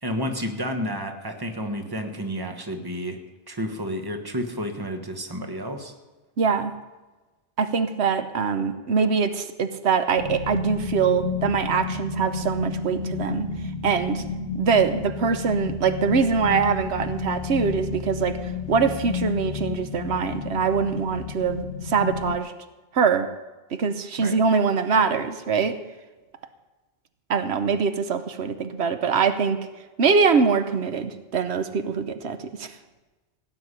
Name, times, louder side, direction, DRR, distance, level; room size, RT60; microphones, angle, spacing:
voice 1, 0.0-3.2 3.5-5.9 24.2-24.5, equal, 20° right, 5 dB, 1.4 m, -31 dB
voice 2, 6.4-6.7 7.6-13.5 13.8-14.2 14.5-22.5 22.9-23.3 23.7-25.8 27.3-29.6 30.0-32.7, right 5 dB, 90° right, 10 dB, 1.1 m, -23 dB
sound 1, 10.2-22.4, left 6 dB, 60° left, 1.4 m, -31 dB
17.0 x 5.9 x 9.9 m, 1.2 s
omnidirectional pair, 1.1 m